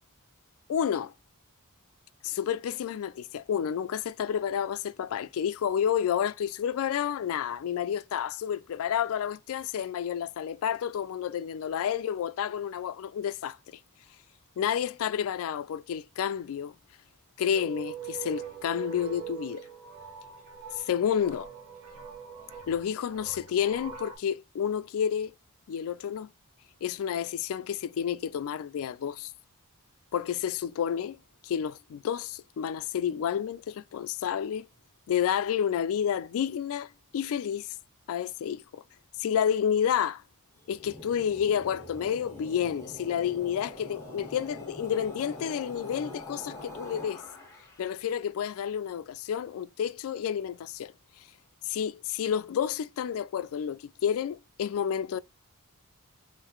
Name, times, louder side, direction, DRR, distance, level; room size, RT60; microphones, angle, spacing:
voice 1, 0.7-1.1 2.2-13.8 14.6-16.7 17.4-19.7 20.9-21.5 22.7-25.3 25.7-26.3 26.8-29.3 30.1-31.2 31.4-34.7 35.1-37.8 38.1-38.8 39.2-40.2 40.7-47.2 47.8-50.9 51.7-55.2, left 8 dB, 65° left, 0.3 m, -30 dB
sound 1, 17.5-24.2, right 7 dB, 80° right, 1.4 m, -42 dB
sound 2, 40.6-48.0, left 2 dB, 15° left, 1.6 m, -44 dB
3.8 x 3.1 x 3.0 m
head